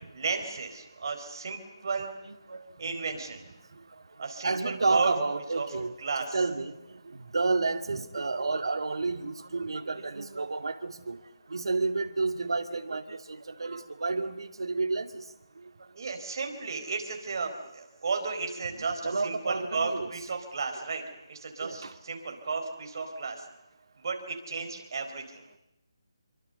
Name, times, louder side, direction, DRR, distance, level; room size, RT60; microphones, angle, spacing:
voice 1, 0.1-2.1 2.8-3.5 4.2-5.1 5.5-5.7 6.0-6.4 15.9-23.5 24.0-25.4, right 4 dB, 50° right, 5 dB, 4.6 m, -33 dB
voice 2, 2.3-2.6 4.4-5.9 6.3-11.2 11.5-15.2 19.0-20.1 21.6-21.9, right 3 dB, 75° right, 8 dB, 2.3 m, -30 dB
27.0 x 23.5 x 6.8 m, 0.92 s
figure-of-eight pair, 165°, 3 cm